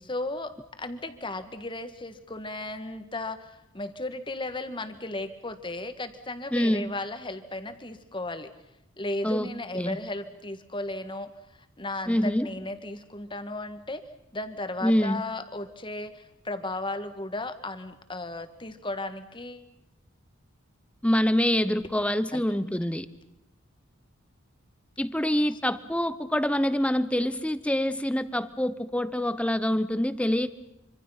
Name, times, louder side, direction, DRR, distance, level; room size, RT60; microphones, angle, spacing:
voice 1, 0.1-8.5 9.0-11.3 11.8-14.0 14.3-19.7 22.3-22.4, left 2 dB, 25° left, 10 dB, 1.6 m, -35 dB
voice 2, 6.5-6.9 9.2-9.5 9.7-10.0 12.1-12.5 14.8-15.2 21.0-23.1 25.0-30.5, equal, 5° left, 13 dB, 0.9 m, -25 dB
26.0 x 25.5 x 5.8 m, 0.84 s
head